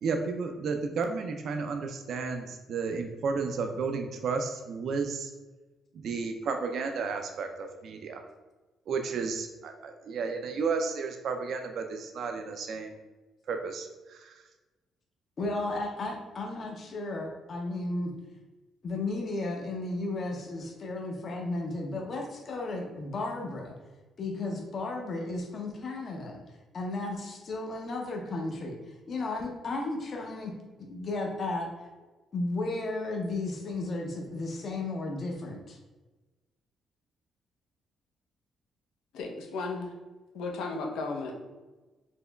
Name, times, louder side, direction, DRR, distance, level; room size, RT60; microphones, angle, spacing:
voice 1, 0.0-5.3 6.0-8.2 8.9-13.0 13.5-14.4, right 4 dB, 65° right, 5 dB, 0.3 m, -32 dB
voice 2, 15.4-18.1 18.8-23.7 24.2-26.4 26.7-28.8 29.1-30.5 30.8-31.7 32.3-35.8, left 2 dB, 50° left, 1 dB, 0.6 m, -34 dB
voice 3, 39.1-39.9 40.3-41.3, left 3 dB, 85° left, 1 dB, 0.6 m, -34 dB
4.3 x 2.9 x 2.2 m, 1.2 s
cardioid pair, 90°, 0 cm